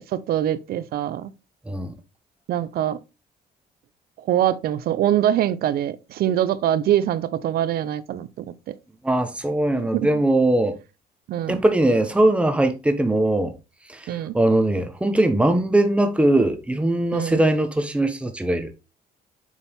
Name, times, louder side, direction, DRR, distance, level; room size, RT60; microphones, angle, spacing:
voice 1, 0.0-1.3 2.5-3.0 4.2-8.8 9.9-10.1 11.3-11.6 14.1-14.4 17.1-17.4, right 11 dB, 65° right, 0.7 m, -24 dB
voice 2, 1.7-2.0 9.0-10.8 11.5-13.5 13.9-18.7, right 1 dB, 5° right, 1.1 m, -20 dB
7.2 x 4.3 x 3.6 m
cardioid pair, 110°, 17 cm